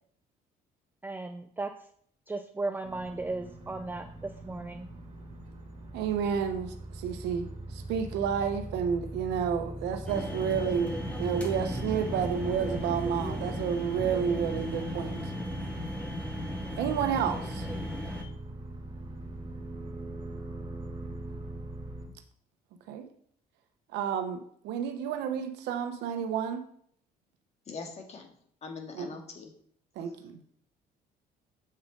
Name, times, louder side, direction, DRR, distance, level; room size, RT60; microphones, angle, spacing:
voice 1, 1.0-1.7 2.3-4.9, right 3 dB, 10° right, 6 dB, 0.5 m, -36 dB
sound 1, 2.8-22.1, right 1 dB, 45° right, 2.7 m, -41 dB
voice 2, 5.9-15.3 16.8-17.7 22.9-23.0 23.9-26.6 28.9-29.1 30.0-30.3, right 7 dB, 85° right, 7 dB, 1.2 m, -30 dB
sound 2, 10.1-18.2, equal, 5° left, 2.0 m, -36 dB
voice 3, 27.7-28.3 28.6-29.5, left 4 dB, 40° left, 3 dB, 2.0 m, -42 dB
7.9 x 7.4 x 4.0 m, 0.62 s
cardioid pair, 110°, 17 cm